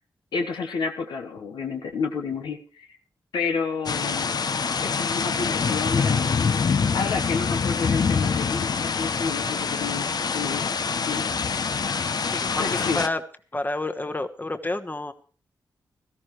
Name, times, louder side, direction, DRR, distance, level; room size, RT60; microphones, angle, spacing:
voice 1, 0.3-2.9 3.3-4.5 4.8-10.7 11.1-11.2 12.6-13.0, left 5 dB, 85° left, 4 dB, 1.3 m, -30 dB
sound 1, 3.9-13.1, left 5 dB, 60° left, 0.8 m, -25 dB
voice 2, 12.3-13.2 13.5-15.1, left 2 dB, 25° left, 8 dB, 1.2 m, -29 dB
16.5 x 13.5 x 3.2 m, 0.39 s
supercardioid pair, 40°, 8 cm